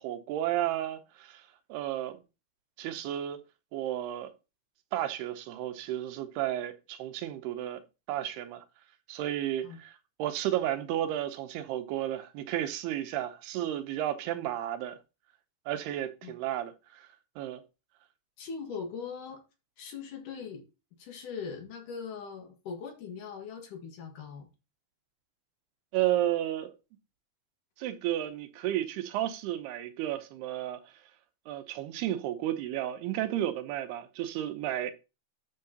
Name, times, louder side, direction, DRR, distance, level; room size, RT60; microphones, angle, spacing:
voice 1, 0.0-1.4 1.7-2.2 2.8-3.4 3.7-4.3 4.9-7.8 8.1-8.6 9.1-9.9 10.2-15.0 15.7-17.1 17.4-17.6 25.9-26.7 27.8-30.8 31.5-34.9, right 12 dB, 90° right, 2.9 m, -32 dB
voice 2, 18.4-19.4 19.8-20.7 21.0-24.5, left 6 dB, 60° left, 3.0 m, -40 dB
11.5 x 6.4 x 2.9 m
omnidirectional pair, 4.6 m